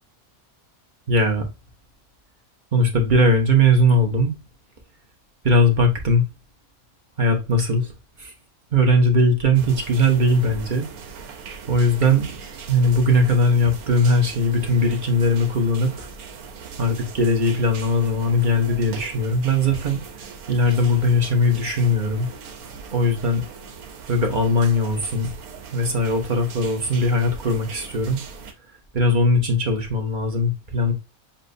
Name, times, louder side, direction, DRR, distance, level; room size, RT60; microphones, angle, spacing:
voice 1, 1.1-1.5 2.7-4.3 5.4-6.3 7.2-7.9 8.2-8.3 8.7-10.9 11.7-12.3 12.7-16.1 16.8-20.0 20.5-22.3 22.9-23.4 24.1-25.3 25.7-28.2 28.9-30.9, left 1 dB, 35° right, 1.1 m, -19 dB
sound 1, 9.5-28.5, right 5 dB, 80° right, 1.2 m, -39 dB
7.3 x 2.5 x 2.6 m
omnidirectional pair, 1.5 m